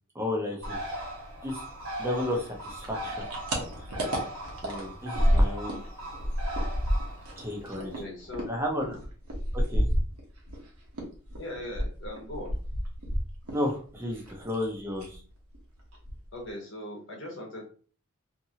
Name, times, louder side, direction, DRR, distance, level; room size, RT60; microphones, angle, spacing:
voice 1, 0.1-0.8 1.4-1.6 2.0-3.2 3.7-3.9 4.6-5.8 7.4-7.9 8.5-9.0 9.5-9.9 13.5-15.2, left 1 dB, 10° right, -1 dB, 0.6 m, -32 dB
Bird, 0.6-8.0, right 1 dB, 65° right, 1.3 m, -39 dB
sound 1, 2.8-5.9 6.1-10.6 10.9-13.7 13.9-14.6 14.9-15.2 15.5-15.6 15.9-16.5, equal, 85° right, 1.0 m, -29 dB
voice 2, 7.8-8.5 11.4-12.6 16.3-17.7, left 1 dB, 55° left, 0 dB, 1.0 m, -39 dB
2.8 x 2.6 x 2.8 m, 0.42 s
head